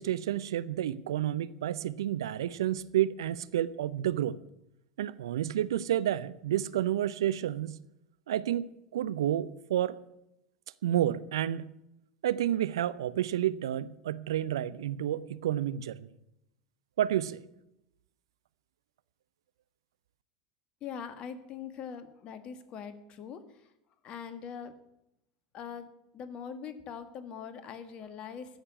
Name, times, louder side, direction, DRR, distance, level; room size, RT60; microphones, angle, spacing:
voice 1, 0.0-4.4 5.0-7.7 8.3-8.7 8.9-10.0 10.8-11.7 12.2-16.0 17.0-17.4, right 11 dB, 75° right, 16 dB, 0.6 m, -30 dB
voice 2, 20.8-23.4 24.0-24.8 25.5-28.6, left 7 dB, 40° left, 11 dB, 1.7 m, -42 dB
15.5 x 6.7 x 9.5 m, 0.84 s
hypercardioid pair, 85°, 3 cm